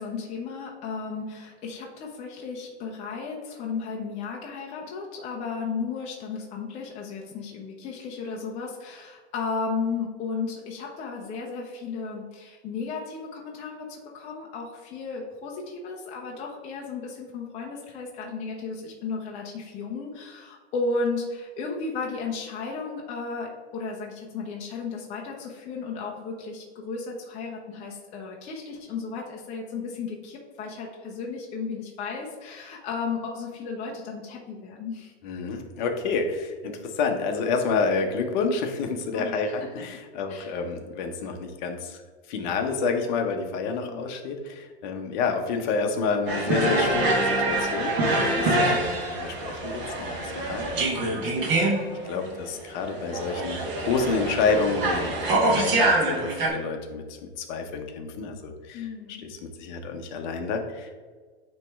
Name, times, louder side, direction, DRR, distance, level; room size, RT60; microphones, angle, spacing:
voice 1, 0.0-35.1 39.1-39.7 40.3-40.5 43.7-44.1 48.4-48.8 58.7-59.2, left 4 dB, 20° left, -1 dB, 0.6 m, -34 dB
voice 2, 35.2-42.0 42.3-51.8 52.0-53.6 53.9-60.9, left 4 dB, 45° left, 5 dB, 0.9 m, -29 dB
sound 1, 46.3-56.5, right 2 dB, 30° right, 1.3 m, -25 dB
9.1 x 3.1 x 3.5 m, 1.5 s
hypercardioid pair, 150°, 33 cm